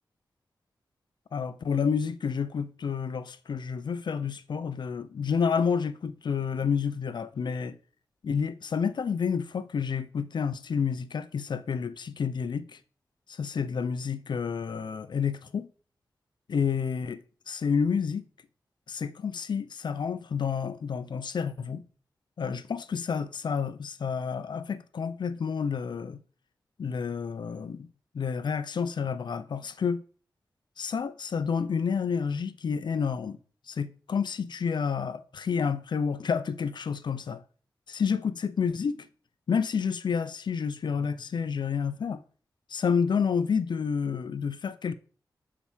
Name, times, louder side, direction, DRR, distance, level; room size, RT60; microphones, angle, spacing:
voice 1, 1.3-7.8 8.2-12.8 13.3-15.7 16.5-18.2 18.9-21.8 22.4-26.2 26.8-27.9 28.1-30.0 30.8-33.4 33.7-37.4 37.9-39.1 39.5-42.2 42.7-44.9, left 6 dB, 85° left, 0.9 m, -29 dB
12.0 x 5.0 x 7.4 m
wide cardioid pair, 105°, 8 cm